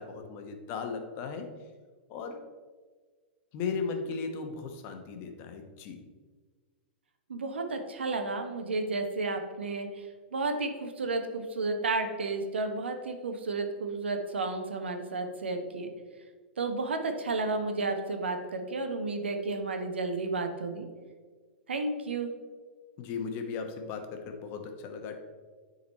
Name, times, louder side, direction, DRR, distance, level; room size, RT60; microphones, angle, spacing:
voice 1, 0.0-1.5 2.1-2.4 3.5-6.0 23.0-25.2, left 5 dB, 40° left, 5 dB, 1.0 m, -36 dB
voice 2, 7.3-15.9 16.6-20.9 21.7-22.3, right 3 dB, 90° right, 5 dB, 1.0 m, -32 dB
9.5 x 4.0 x 4.2 m, 1.5 s
hypercardioid pair, 120°, 6 cm